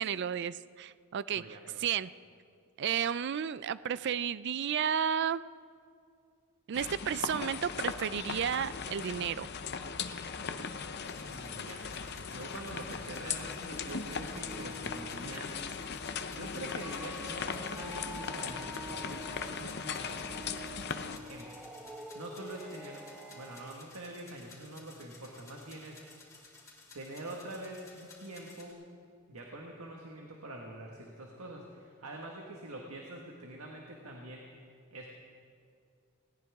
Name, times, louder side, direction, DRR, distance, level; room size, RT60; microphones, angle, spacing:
voice 1, 0.0-1.4 1.8-2.1 2.8-5.4 6.7-9.5, right 8 dB, 50° right, 17 dB, 0.4 m, -32 dB
voice 2, 1.3-1.8 11.3-11.9 12.3-15.6 16.3-20.3 21.1-21.6 22.1-26.0 26.9-28.8 29.3-34.5 34.9-35.1, right 1 dB, 80° right, 0 dB, 1.6 m, -45 dB
sound 1, 6.7-21.2, left 5 dB, 50° left, 0.7 m, -38 dB
Typing and Drone, 11.0-28.7, left 3 dB, 15° left, 3.4 m, -56 dB
sound 2, 13.4-23.8, right 1 dB, 5° right, 0.9 m, -48 dB
20.0 x 18.0 x 3.6 m, 2.2 s
head